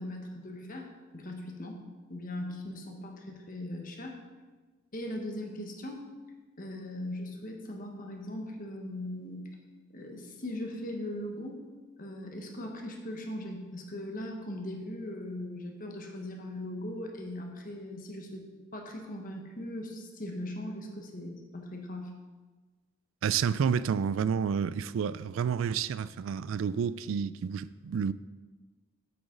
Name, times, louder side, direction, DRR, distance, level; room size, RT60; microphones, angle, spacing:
voice 1, 0.0-1.8 2.1-4.2 4.9-6.0 6.6-9.5 9.9-11.6 12.0-18.5 18.7-22.1, left 1 dB, 40° left, 2 dB, 1.2 m, -39 dB
voice 2, 23.2-28.1, right 7 dB, 65° right, 16 dB, 0.3 m, -30 dB
9.0 x 7.9 x 3.8 m, 1.3 s
head